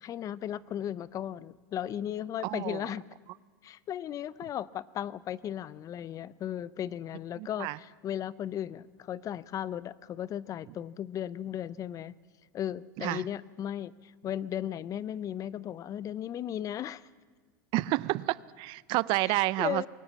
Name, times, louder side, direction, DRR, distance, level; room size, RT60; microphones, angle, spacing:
voice 1, 0.0-3.0 3.6-12.1 12.5-17.1 19.2-19.9, left 10 dB, 35° left, 19 dB, 0.6 m, -36 dB
voice 2, 2.4-2.8 7.4-7.8 13.0-13.2 17.7-19.9, right 20 dB, 50° right, 20 dB, 0.6 m, -29 dB
22.0 x 19.0 x 7.4 m, 1.5 s
supercardioid pair, 115°, 10 cm